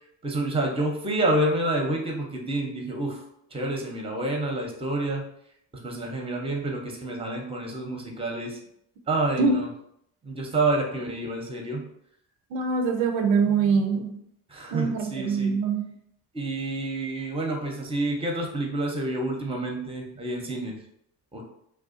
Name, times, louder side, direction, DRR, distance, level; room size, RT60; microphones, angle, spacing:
voice 1, 0.2-3.2 3.5-5.3 5.7-8.6 9.1-9.7 10.2-11.9 14.5-15.5 16.3-20.8 21.3-21.5, right 2 dB, 10° right, 1 dB, 0.6 m, -28 dB
voice 2, 12.5-14.1 14.7-15.9, right 5 dB, 85° right, 5 dB, 0.5 m, -24 dB
2.6 x 2.2 x 2.5 m, 0.72 s
hypercardioid pair, 60°, 49 cm